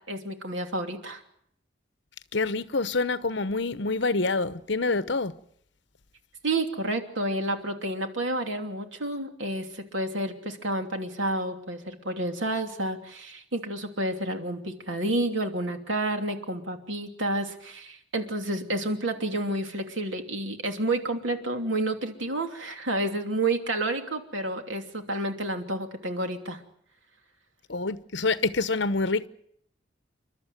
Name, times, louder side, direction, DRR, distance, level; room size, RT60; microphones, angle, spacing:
voice 1, 0.1-1.2 6.4-26.6, right 1 dB, 90° right, 2.9 m, -30 dB
voice 2, 2.3-5.3 27.7-29.3, left 3 dB, 65° left, 1.0 m, -26 dB
29.0 x 12.5 x 9.3 m
head